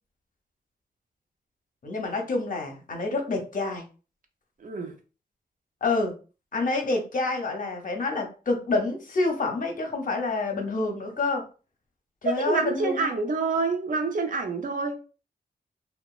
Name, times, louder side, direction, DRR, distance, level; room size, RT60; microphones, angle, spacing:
voice 1, 1.8-3.8 5.8-6.1 6.5-11.4 12.2-13.1, left 3 dB, 55° left, 0.6 m, -28 dB
voice 2, 4.6-4.9 12.2-15.0, right 3 dB, 55° right, 0.5 m, -27 dB
2.9 x 2.2 x 2.3 m
wide cardioid pair, 155°, 17 cm